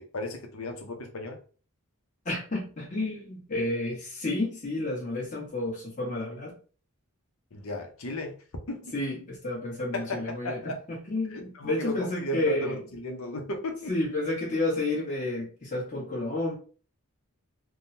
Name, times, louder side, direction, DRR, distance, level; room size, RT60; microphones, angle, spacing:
voice 1, 0.0-1.4 7.5-8.3 8.7-8.9 9.9-10.8 11.3-13.9, left 1 dB, 80° left, 4 dB, 0.7 m, -35 dB
voice 2, 2.2-6.5 8.9-12.8 13.9-16.5, left 2 dB, 35° left, -5 dB, 1.3 m, -31 dB
3.5 x 2.2 x 2.6 m, 0.39 s
head